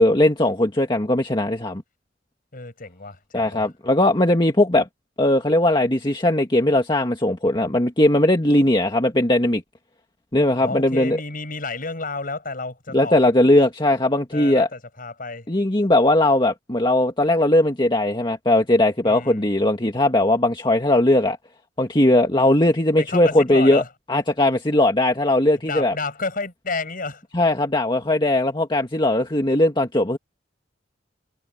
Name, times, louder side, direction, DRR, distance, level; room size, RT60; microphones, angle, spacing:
voice 1, 0.0-1.8 3.3-4.9 5.2-9.6 10.3-11.2 12.9-14.7 15.5-21.4 21.8-23.8 24.1-26.0 27.3-30.2, left 1 dB, 25° left, 1.9 m, -19 dB
voice 2, 2.5-3.7 10.6-13.2 14.3-15.5 19.0-19.5 23.0-23.9 25.6-27.2, left 3 dB, 50° left, 6.6 m, -31 dB
head